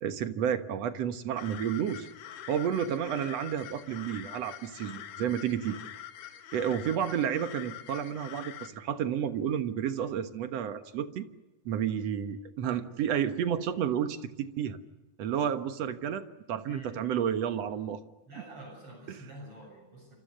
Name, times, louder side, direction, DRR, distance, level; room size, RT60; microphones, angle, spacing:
voice 1, 0.0-2.1 2.5-5.8 6.5-11.3 11.7-14.8 15.2-18.0 19.1-19.2, right 9 dB, 60° right, 9 dB, 2.1 m, -31 dB
sound 1, 1.4-8.7, left 10 dB, 70° left, 2.9 m, -45 dB
voice 2, 16.7-17.2 18.3-20.2, right 1 dB, 40° right, 1 dB, 8.2 m, -47 dB
28.0 x 27.0 x 6.6 m, 1.1 s
omnidirectional pair, 3.9 m